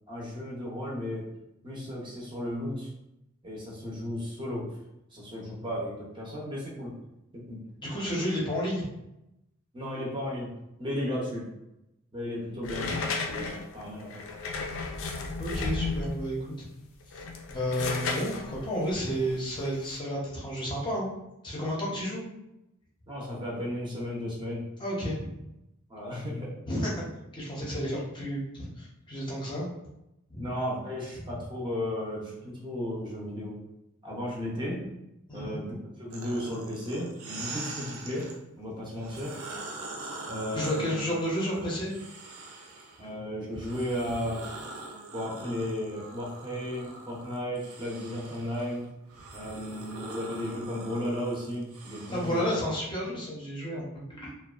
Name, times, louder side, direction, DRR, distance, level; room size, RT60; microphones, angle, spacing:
voice 1, 0.1-1.3 1.6-2.9 3.4-4.7 5.1-6.9 7.3-7.6 9.7-10.5 10.8-11.5 12.1-14.3 23.1-24.7 25.9-26.5 27.9-28.0 30.4-33.6 34.0-34.8 35.3-38.3 38.6-39.3 40.3-41.0 43.0-44.5 45.1-48.9 49.3-52.6, left 1 dB, 20° right, -4 dB, 0.6 m, -34 dB
voice 2, 7.8-8.9 15.4-16.6 17.5-21.1 21.4-22.2 24.8-25.4 26.7-27.0 27.3-29.7 30.3-30.5 35.3-35.6 40.5-41.9 52.1-54.3, equal, 20° left, -5 dB, 0.6 m, -31 dB
sound 1, 12.6-16.3 17.0-20.0, left 3 dB, 65° left, 0.3 m, -34 dB
sound 2, 36.1-38.4 38.9-43.0 43.5-52.7, right 2 dB, 80° right, 0.4 m, -43 dB
2.4 x 2.2 x 2.3 m, 0.88 s
head